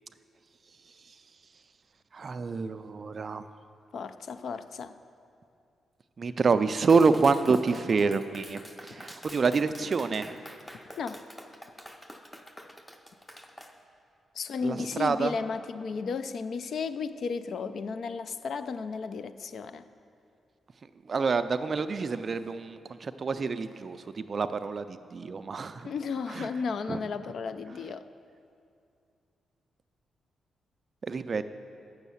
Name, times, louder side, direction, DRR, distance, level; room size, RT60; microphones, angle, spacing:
voice 1, 2.1-3.4 6.2-10.4 14.6-15.4 21.1-25.9 26.3-26.5 26.9-27.0 31.0-31.4, right 4 dB, 40° right, 11 dB, 0.3 m, -27 dB
voice 2, 3.9-4.9 11.0-11.2 14.4-19.8 25.8-28.0, left 5 dB, 60° left, 12 dB, 0.3 m, -34 dB
Clapping, 6.9-13.7, equal, 10° left, 0.5 m, -48 dB
7.1 x 6.4 x 6.9 m, 2.5 s
cardioid pair, 120°, 0 cm